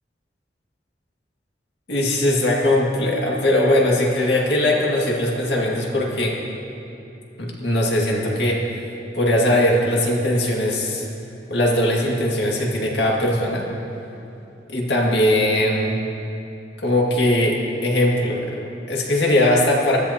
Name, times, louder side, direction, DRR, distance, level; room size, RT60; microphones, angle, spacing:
voice 1, 1.9-6.4 7.4-8.6 9.1-11.1 11.5-13.7 14.7-15.9 16.8-20.0, left 1 dB, 75° left, -2 dB, 2.1 m, -20 dB
19.5 x 14.0 x 2.9 m, 2.8 s
head